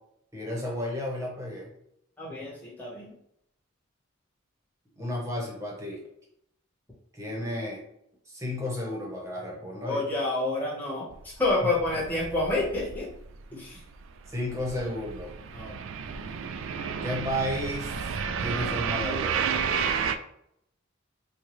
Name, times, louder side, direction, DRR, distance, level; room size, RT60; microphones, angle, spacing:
voice 1, 0.3-1.7 5.0-6.0 7.1-7.8 8.3-10.0 11.6-11.7 13.5-13.7 14.3-15.3 17.0-18.0 18.4-19.5, left 1 dB, 15° right, -2 dB, 0.9 m, -33 dB
voice 2, 2.2-3.1 9.9-13.1 13.5-13.8 15.5-15.8, left 2 dB, 10° left, -7 dB, 1.1 m, -29 dB
sound 1, 11.1-13.4 13.7-20.2, right 6 dB, 70° right, 0.3 m, -32 dB
4.5 x 2.3 x 3.1 m, 0.74 s
head